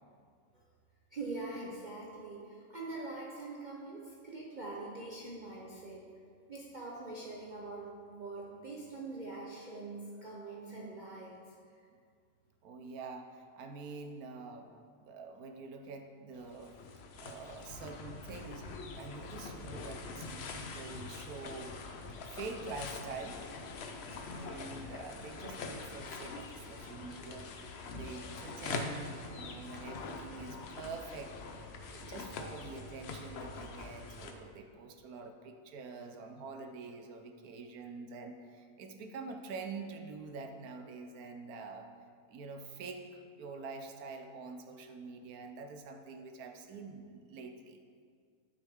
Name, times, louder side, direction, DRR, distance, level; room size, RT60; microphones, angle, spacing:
voice 1, 1.1-6.1 6.5-11.9, right 3 dB, 40° right, -4 dB, 0.7 m, -44 dB
voice 2, 12.6-16.8 17.2-21.8 22.3-23.4 24.3-31.3 31.8-41.9 42.3-47.8, right 4 dB, 75° right, 5 dB, 1.2 m, -46 dB
sound 1, 16.3-34.3, left 3 dB, 60° left, 0.7 m, -44 dB
9.4 x 6.5 x 3.6 m, 2.1 s
omnidirectional pair, 1.6 m